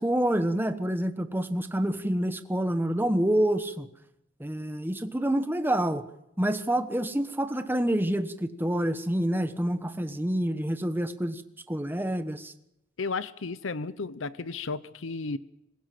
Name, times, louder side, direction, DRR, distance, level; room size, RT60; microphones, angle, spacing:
voice 1, 0.0-3.9 4.4-6.1 6.4-11.4 11.7-12.5, right 1 dB, 10° right, 9 dB, 1.2 m, -27 dB
voice 2, 13.0-15.4, left 4 dB, 80° left, 15 dB, 0.8 m, -33 dB
26.0 x 16.5 x 7.7 m, 0.83 s
head